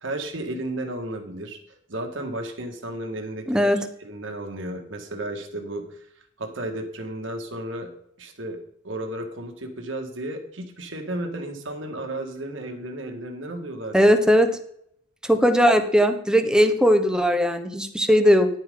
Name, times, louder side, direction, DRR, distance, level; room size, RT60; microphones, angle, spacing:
voice 1, 0.0-3.7 4.0-5.8 6.4-7.9 8.2-8.6 8.8-14.1, right 1 dB, 75° right, 4 dB, 1.8 m, -33 dB
voice 2, 3.5-3.8 13.9-14.5 15.2-18.5, equal, 5° right, 7 dB, 1.0 m, -18 dB
11.0 x 9.0 x 3.8 m, 0.68 s
head